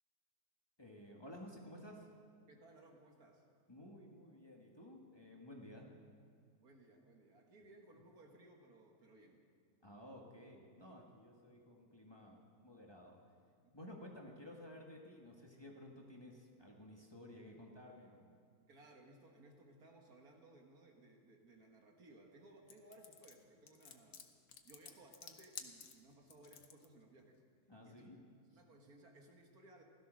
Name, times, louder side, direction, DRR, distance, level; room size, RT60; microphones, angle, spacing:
voice 1, 0.8-2.1 3.7-5.9 9.8-13.2 13.7-18.3 27.7-28.2, left 1 dB, 15° left, -1 dB, 1.7 m, -54 dB
voice 2, 2.5-3.5 5.7-5.8 6.6-9.4 13.6-13.9 18.7-24.3 24.6-27.4 27.8-28.1 28.5-29.8, right 2 dB, 75° right, 2 dB, 2.2 m, -62 dB
sound 1, 22.7-26.9, left 7 dB, 70° left, 1.5 m, -53 dB
16.5 x 13.5 x 6.4 m, 2.3 s
omnidirectional pair, 1.6 m